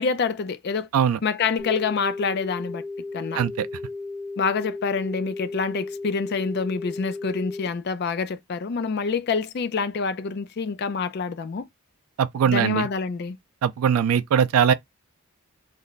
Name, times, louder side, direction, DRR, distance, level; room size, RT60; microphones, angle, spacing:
voice 1, 0.0-0.9 1.2-2.8 3.1-3.4 4.4-11.6 12.5-13.4, left 5 dB, 50° left, 0.4 m, -26 dB
sound 1, 1.6-7.7, left 3 dB, 15° left, 0.7 m, -35 dB
voice 2, 3.3-3.7 12.2-12.9 13.6-14.7, right 8 dB, 80° right, 0.3 m, -21 dB
3.2 x 2.1 x 3.9 m
head